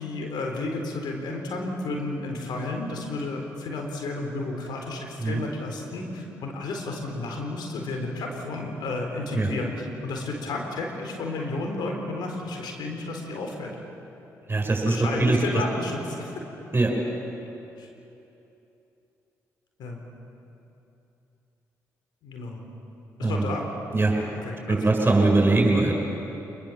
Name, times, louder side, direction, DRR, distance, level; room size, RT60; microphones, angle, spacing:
voice 1, 0.0-13.7 14.9-16.3 17.8-17.9 19.8-20.0 22.2-22.7 23.2-23.7 24.0-25.1, left 2 dB, 75° left, 2 dB, 4.1 m, -32 dB
voice 2, 14.5-15.4 16.7-16.9 23.2-23.5 23.9-24.1 24.7-25.9, right 2 dB, 30° right, 1 dB, 7.5 m, -21 dB
25.5 x 22.0 x 7.5 m, 2.9 s
supercardioid pair, 50°, 8 cm